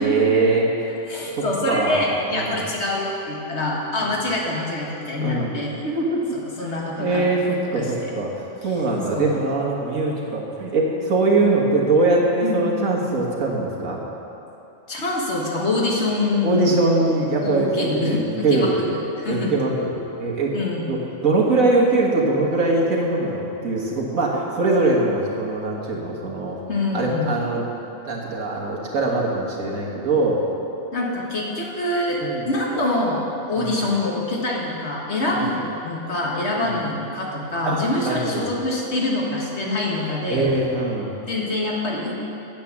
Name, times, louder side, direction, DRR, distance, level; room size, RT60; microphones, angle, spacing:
voice 1, 0.0-0.9 1.3-2.0 2.3-2.6 5.2-5.5 5.8-6.2 6.6-6.7 7.0-7.4 7.7-14.0 16.4-18.2 18.4-18.8 19.3-19.9 20.2-20.6 20.9-26.6 26.9-27.6 28.1-30.4 32.2-32.5 33.6-33.7 35.3-35.5 36.6-36.7 37.6-38.5 40.3-41.1, right 2 dB, 80° right, -2 dB, 1.9 m, -22 dB
voice 2, 1.1-5.8 6.3-7.5 7.7-8.1 9.1-9.4 12.4-12.6 14.9-16.7 17.4-19.5 20.5-20.8 26.7-27.3 30.9-33.2 33.5-40.5 41.3-42.1, left 2 dB, 55° left, -3 dB, 1.8 m, -25 dB
8.9 x 8.2 x 7.1 m, 2.9 s
omnidirectional pair, 1.4 m